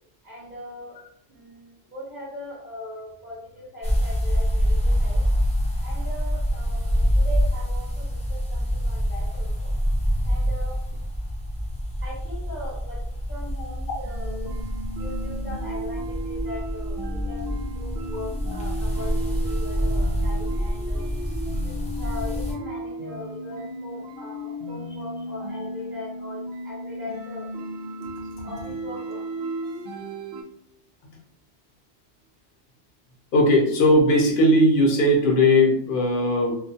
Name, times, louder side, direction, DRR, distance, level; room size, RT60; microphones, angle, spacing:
voice 1, 0.2-1.0 1.3-5.2 5.8-9.7 10.2-10.8 12.0-13.0 13.3-14.5 15.0-21.1 21.6-27.5 28.4-29.2, left 1 dB, 15° right, -8 dB, 0.8 m, -40 dB
sound 1, 3.8-22.5, equal, 10° left, 0.4 m, -26 dB
sound 2, 14.0-30.4, right 1 dB, 70° right, 0.8 m, -35 dB
voice 2, 33.3-36.5, left 1 dB, 55° left, 0 dB, 0.8 m, -18 dB
2.4 x 2.2 x 2.7 m, 0.70 s
omnidirectional pair, 1.2 m